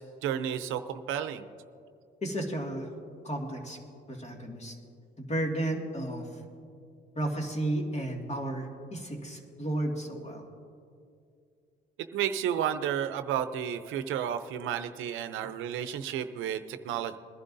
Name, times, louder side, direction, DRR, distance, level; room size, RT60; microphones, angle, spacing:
voice 1, 0.0-1.5 12.1-17.2, right 9 dB, 90° right, 11 dB, 0.6 m, -32 dB
voice 2, 2.2-2.9 3.2-3.8 4.1-4.7 5.2-6.4 7.2-10.4, right 1 dB, 35° left, 1 dB, 2.1 m, -33 dB
21.0 x 11.0 x 2.7 m, 2.4 s
cardioid pair, 90°, 20 cm